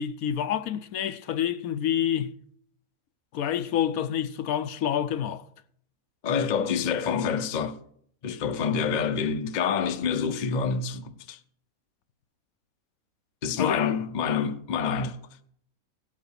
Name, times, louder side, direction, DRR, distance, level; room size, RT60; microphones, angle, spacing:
voice 1, 0.0-2.3 3.3-5.4 13.6-13.8, left 9 dB, 75° left, 1.1 m, -28 dB
voice 2, 6.2-7.8 8.2-11.4 13.4-15.2, left 6 dB, 45° left, 0.6 m, -27 dB
17.0 x 5.7 x 6.5 m
omnidirectional pair, 1.6 m